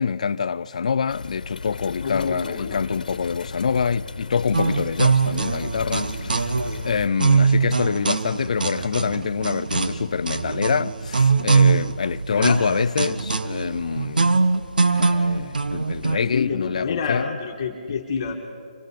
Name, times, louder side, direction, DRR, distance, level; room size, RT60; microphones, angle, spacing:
voice 1, 0.0-6.6 6.8-14.3 14.9-17.4, left 6 dB, 50° left, 0.5 m, -25 dB
sound 1, 1.1-7.1, left 4 dB, 70° left, 1.3 m, -36 dB
voice 2, 2.0-2.8 12.3-12.6 16.0-18.4, left 6 dB, 30° left, 1.7 m, -28 dB
sound 2, 4.5-16.2, right 4 dB, 85° right, 1.2 m, -22 dB
25.5 x 17.0 x 8.4 m
hypercardioid pair, 165°, 5 cm